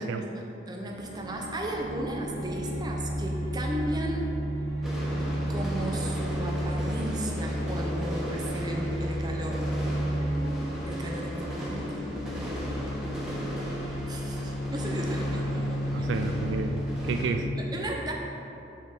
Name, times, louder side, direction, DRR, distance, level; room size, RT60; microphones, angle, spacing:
voice 1, 0.0-4.3 5.5-9.7 10.9-12.1 14.1-16.1 17.6-18.1, right 1 dB, 20° right, 0 dB, 0.7 m, -35 dB
sound 1, 0.9-17.3, equal, 60° right, 1.4 m, -32 dB
sound 2, 4.8-17.3, equal, 5° right, 1.1 m, -38 dB
voice 2, 15.5-17.5, right 4 dB, 90° right, 6 dB, 0.3 m, -32 dB
6.4 x 4.0 x 6.4 m, 2.9 s
head